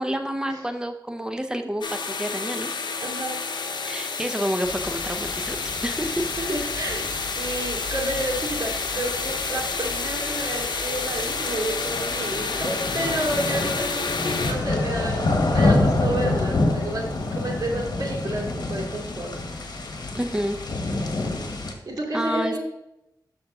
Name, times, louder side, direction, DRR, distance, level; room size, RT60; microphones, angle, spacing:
voice 1, 0.0-2.7 3.9-5.6 5.8-6.3 20.1-20.6 22.1-22.6, equal, 10° right, 6 dB, 0.8 m, -28 dB
sound 1, 1.8-14.5, left 4 dB, 80° left, 0.7 m, -30 dB
voice 2, 3.0-3.4 6.4-17.1 17.3-19.3 21.9-22.6, right 1 dB, 55° right, -2 dB, 2.4 m, -30 dB
sound 2, 4.6-21.7, left 2 dB, 65° left, 1.2 m, -28 dB
6.2 x 6.2 x 3.6 m, 0.86 s
wide cardioid pair, 65°, 8 cm